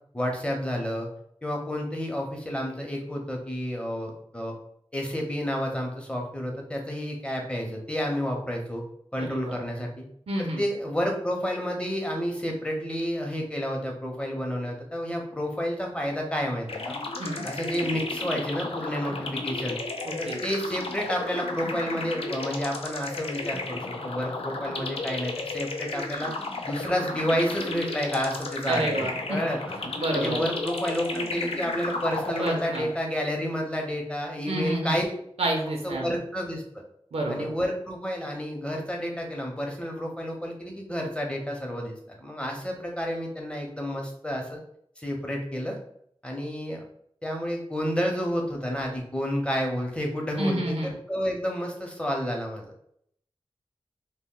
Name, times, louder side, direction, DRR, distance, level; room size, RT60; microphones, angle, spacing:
voice 1, 0.1-1.1 1.4-4.6 4.9-8.8 9.1-10.0 10.4-17.0 17.4-19.8 20.2-26.3 26.6-29.6 30.1-35.0 35.8-36.6 37.3-44.6 45.0-45.8 46.2-46.8 47.2-52.7, equal, 10° left, 0 dB, 0.7 m, -30 dB
voice 2, 9.2-9.6 10.3-10.6 17.2-17.5 20.0-20.4 28.7-29.4 29.8-30.4 32.4-32.9 34.5-35.0 35.4-36.2 37.1-37.5 50.4-50.9, right 1 dB, 85° right, 1 dB, 0.5 m, -29 dB
sound 1, 16.7-33.1, left 3 dB, 70° left, 0.4 m, -33 dB
2.1 x 2.1 x 3.7 m, 0.69 s
wide cardioid pair, 55°, 10 cm